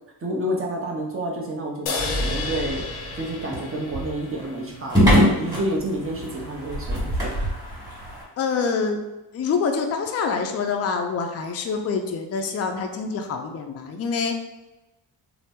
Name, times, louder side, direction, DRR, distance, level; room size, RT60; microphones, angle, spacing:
voice 1, 0.2-2.8 3.1-7.4, right 1 dB, 30° right, -1 dB, 0.7 m, -29 dB
sound 1, 1.9-5.3, left 4 dB, 80° left, 0.6 m, -33 dB
sound 2, 2.0-8.2, equal, 10° right, 1.3 m, -24 dB
voice 2, 8.4-9.0 9.3-14.3, left 5 dB, 35° left, 4 dB, 0.4 m, -26 dB
2.8 x 2.0 x 3.5 m, 1.0 s
cardioid pair, 80°, 45 cm